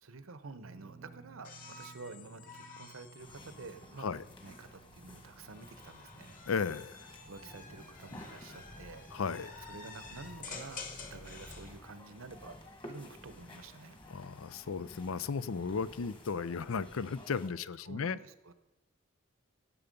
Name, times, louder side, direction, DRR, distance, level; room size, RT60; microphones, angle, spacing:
voice 1, 0.0-4.1 4.4-6.4 7.3-9.1 9.6-12.6 12.8-14.0 17.8-18.5, right 3 dB, 80° right, 12 dB, 0.9 m, -49 dB
sound 1, 0.6-12.9 13.1-13.4 15.0-15.1, right 5 dB, 30° right, 0.6 m, -61 dB
sound 2, 1.4-4.7 5.5-11.7 13.2-13.7, left 4 dB, 40° left, 2.0 m, -50 dB
sound 3, 3.2-17.5, left 1 dB, 25° left, 1.7 m, -53 dB
voice 2, 6.5-7.1 9.1-9.5 14.1-18.2, left 5 dB, 80° left, 17 dB, 0.5 m, -35 dB
17.0 x 7.1 x 5.3 m, 1.0 s
head